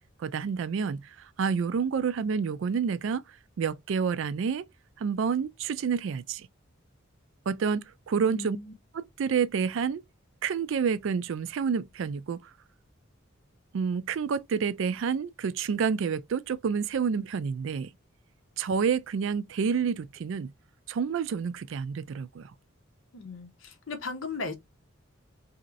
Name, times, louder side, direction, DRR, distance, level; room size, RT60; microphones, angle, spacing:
voice 1, 0.2-3.2 3.6-4.6 5.0-6.5 7.5-8.6 8.9-10.0 10.4-12.4 13.7-17.9 18.6-20.5 20.9-22.5, right 6 dB, 65° right, 0.3 m, -29 dB
voice 2, 8.3-8.7 23.1-24.5, left 3 dB, 75° left, 0.8 m, -37 dB
3.0 x 2.8 x 2.5 m
head